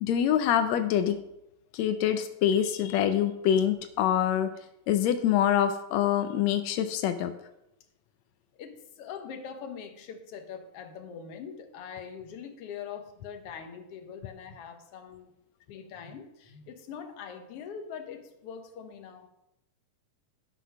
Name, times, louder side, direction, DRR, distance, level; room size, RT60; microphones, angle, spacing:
voice 1, 0.0-1.2 1.7-4.5 4.9-7.3, left 10 dB, 90° left, 8 dB, 1.5 m, -25 dB
voice 2, 8.6-15.3 15.7-19.3, left 7 dB, 60° left, 5 dB, 1.6 m, -42 dB
11.0 x 6.0 x 5.9 m, 0.85 s
omnidirectional pair, 3.9 m